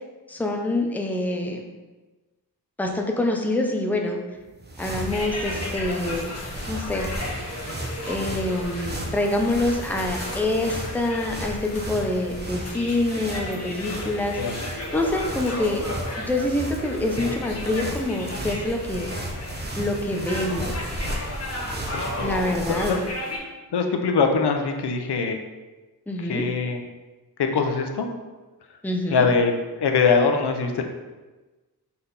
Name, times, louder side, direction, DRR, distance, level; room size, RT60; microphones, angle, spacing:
voice 1, 0.3-1.7 2.8-4.2 4.8-6.4 6.7-7.1 8.1-14.4 14.7-15.9 16.2-19.1 19.8-20.8 22.2-23.0 26.1-26.5 28.8-29.3, left 2 dB, 5° left, 2 dB, 0.6 m, -26 dB
sound 1, 4.4-23.2, right 1 dB, 25° right, 0.8 m, -35 dB
sound 2, 4.8-23.4, left 1 dB, 40° left, 1.3 m, -34 dB
voice 2, 21.9-22.3 22.9-23.0 23.7-25.4 26.2-26.8 27.4-28.1 29.1-30.8, left 5 dB, 90° left, 4 dB, 0.8 m, -22 dB
5.7 x 4.2 x 4.0 m, 1.2 s
wide cardioid pair, 145°, 39 cm